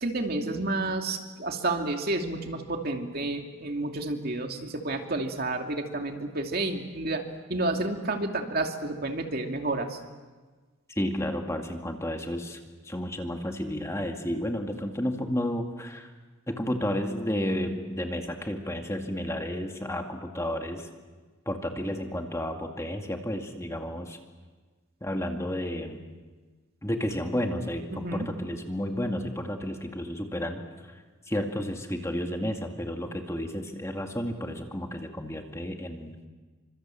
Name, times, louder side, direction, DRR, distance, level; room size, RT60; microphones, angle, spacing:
voice 1, 0.0-7.2 7.5-10.0 27.9-28.3, right 2 dB, 50° right, 3 dB, 2.6 m, -30 dB
voice 2, 10.9-16.1 16.5-20.9 21.5-24.2 25.0-26.0 26.8-36.2, equal, 15° left, 3 dB, 2.2 m, -32 dB
29.5 x 25.5 x 7.7 m, 1.3 s
head